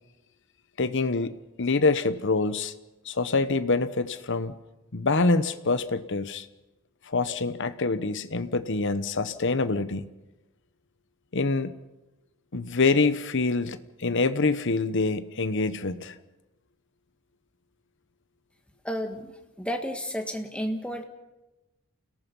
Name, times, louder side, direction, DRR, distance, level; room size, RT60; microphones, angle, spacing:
voice 1, 0.8-2.7 3.0-4.6 4.9-6.5 7.1-10.1 11.3-11.7 12.5-16.2, left 3 dB, 55° left, 1.0 m, -26 dB
voice 2, 18.8-19.3 19.6-21.0, equal, 5° left, 1.8 m, -31 dB
29.0 x 18.5 x 5.5 m
head